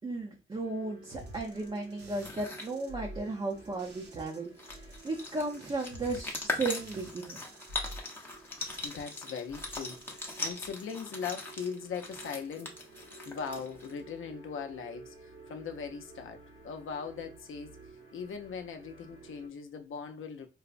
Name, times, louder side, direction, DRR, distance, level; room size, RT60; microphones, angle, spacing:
voice 1, 0.0-7.4, right 3 dB, 25° right, 0.6 m, -35 dB
sound 1, 0.6-19.5, right 4 dB, 85° right, 1.4 m, -54 dB
sound 2, 1.1-4.4 4.7-9.2 9.5-10.7, equal, 55° right, 0.8 m, -49 dB
sound 3, 2.0-2.7 4.1-4.2 4.4-14.0, left 2 dB, 10° left, 0.7 m, -40 dB
voice 2, 8.4-12.8 13.2-17.8 18.1-20.5, left 6 dB, 75° left, 0.6 m, -40 dB
4.6 x 2.0 x 2.4 m
wide cardioid pair, 130°, 21 cm